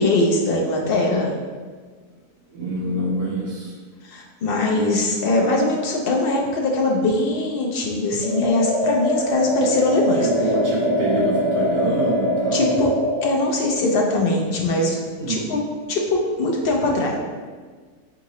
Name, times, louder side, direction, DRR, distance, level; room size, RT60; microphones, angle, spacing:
voice 1, 0.0-1.3 4.0-10.3 12.5-12.9 13.2-15.0 15.3-15.6 15.9-17.2, left 2 dB, 65° left, -1 dB, 0.5 m, -21 dB
voice 2, 2.5-3.7 10.1-12.7 15.2-15.5, right 2 dB, 65° right, -8 dB, 1.8 m, -26 dB
sound 1, 8.2-13.2, equal, 30° left, 1.6 m, -23 dB
Bowed string instrument, 9.1-14.3, equal, 40° right, 0.6 m, -31 dB
4.6 x 3.7 x 3.0 m, 1.5 s
omnidirectional pair, 1.6 m